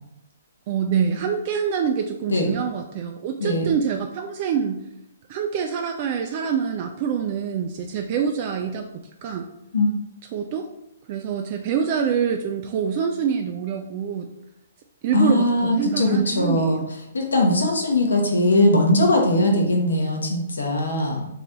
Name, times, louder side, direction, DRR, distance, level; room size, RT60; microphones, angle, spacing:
voice 1, 0.7-4.8 5.3-9.5 10.3-10.7 11.1-14.3 15.0-16.8, right 7 dB, 40° right, 4 dB, 0.3 m, -25 dB
voice 2, 3.4-3.7 9.7-9.9 15.1-16.8 17.1-21.3, left 1 dB, 75° left, 1 dB, 1.0 m, -20 dB
3.2 x 2.9 x 3.8 m, 0.84 s
figure-of-eight pair, 125°, 0 cm